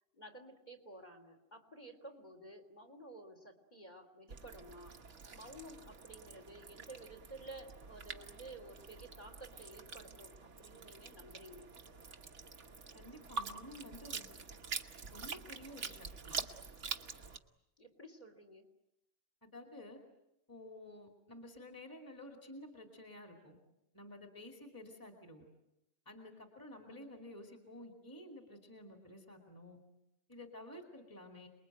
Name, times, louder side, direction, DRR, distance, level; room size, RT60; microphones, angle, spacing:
voice 1, 0.1-5.0 5.3-11.7 17.8-18.7, right 1 dB, 35° left, 6 dB, 3.4 m, -53 dB
sound 1, 4.3-17.4, right 5 dB, 70° right, 1.6 m, -46 dB
voice 2, 12.9-14.3 15.1-16.5 19.5-20.0 20.5-23.6 23.9-25.5 26.1-29.8 30.3-31.5, left 1 dB, 15° left, 3 dB, 2.6 m, -52 dB
28.5 x 21.5 x 9.2 m, 0.89 s
omnidirectional pair, 1.3 m